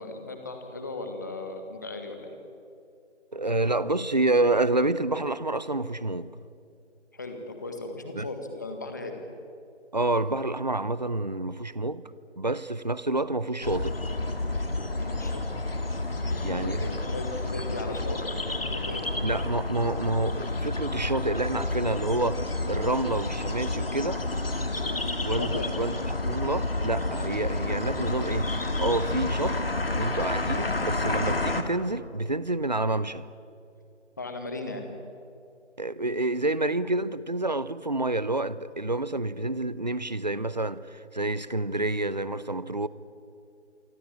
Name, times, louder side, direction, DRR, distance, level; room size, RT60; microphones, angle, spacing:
voice 1, 0.0-2.3 7.1-9.2 14.9-15.4 16.1-19.1 24.9-25.0 25.4-25.7 34.2-34.9, left 2 dB, 15° left, 1.7 m, -37 dB
voice 2, 3.3-6.4 8.1-8.3 9.9-12.1 12.4-14.0 16.4-17.0 19.2-24.2 25.2-26.0 26.2-29.6 29.9-33.2 35.8-42.9, right 2 dB, 35° right, 0.8 m, -28 dB
sound 1, 13.6-31.6, left 2 dB, 50° left, 2.4 m, -30 dB
27.0 x 24.0 x 8.8 m
figure-of-eight pair, 165°, 36 cm